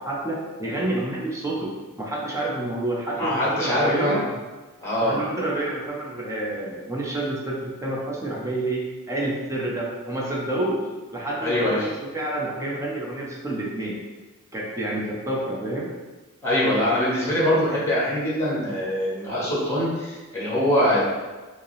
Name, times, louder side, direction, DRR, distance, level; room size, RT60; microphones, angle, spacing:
voice 1, 0.0-1.7 2.0-4.2 5.0-10.8 11.1-13.9 14.5-15.9, right 1 dB, 15° right, -4 dB, 0.6 m, -28 dB
voice 2, 3.2-4.2 4.8-5.1 11.4-11.9 16.4-21.1, left 1 dB, 15° left, -8 dB, 1.3 m, -23 dB
4.9 x 2.0 x 3.1 m, 1.2 s
head